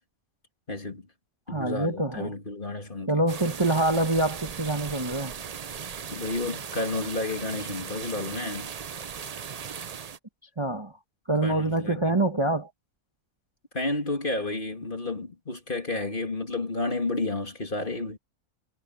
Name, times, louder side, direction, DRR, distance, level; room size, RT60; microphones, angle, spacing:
voice 1, 0.7-1.1 1.5-3.2 6.1-8.7 11.4-12.2 13.7-18.2, left 2 dB, 35° left, 2.8 m, -31 dB
voice 2, 1.5-2.3 3.1-5.3 10.6-10.9 11.3-12.7, right 2 dB, 20° right, 1.3 m, -25 dB
sound 1, 3.3-10.2, right 7 dB, 55° right, 0.4 m, -38 dB
omnidirectional pair, 1.5 m